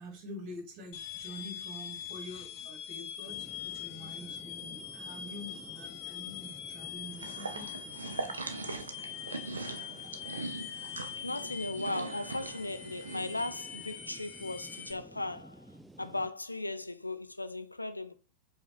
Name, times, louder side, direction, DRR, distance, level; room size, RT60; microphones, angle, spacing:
voice 1, 0.0-7.7, left 1 dB, 40° right, 1.5 m, -46 dB
sound 1, 0.9-14.9, left 9 dB, 45° left, 0.7 m, -43 dB
sound 2, 3.3-16.3, right 1 dB, 5° right, 0.4 m, -54 dB
sound 3, 7.1-13.4, right 3 dB, 75° right, 0.4 m, -41 dB
voice 2, 11.2-18.1, left 2 dB, 85° left, 0.3 m, -37 dB
4.9 x 2.4 x 3.1 m
figure-of-eight pair, 90°, 0 cm